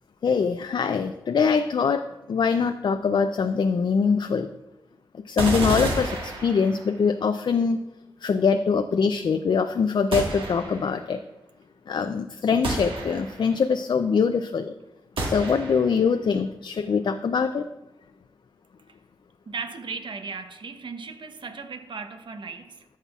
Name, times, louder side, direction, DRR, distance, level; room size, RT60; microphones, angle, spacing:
voice 1, 0.2-4.5 5.3-7.8 8.2-11.2 11.9-14.7 15.2-17.6, left 5 dB, 60° left, 0.4 m, -23 dB
sound 1, 5.4-7.0 10.1-11.0 12.6-13.6 15.2-16.0, right 2 dB, 75° right, 1.6 m, -30 dB
voice 2, 19.5-22.8, right 5 dB, 60° right, 0.9 m, -36 dB
14.0 x 5.6 x 2.4 m
cardioid pair, 50°, 9 cm